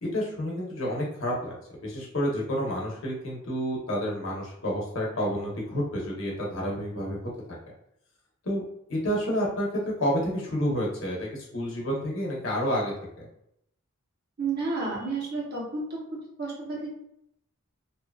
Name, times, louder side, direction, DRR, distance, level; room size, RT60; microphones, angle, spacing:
voice 1, 0.0-1.5 1.8-7.2 8.4-8.6 8.9-13.3, equal, 65° left, -3 dB, 0.8 m, -29 dB
voice 2, 14.4-15.8 16.4-16.9, right 3 dB, 50° right, -4 dB, 0.8 m, -31 dB
2.6 x 2.3 x 2.2 m, 0.76 s
head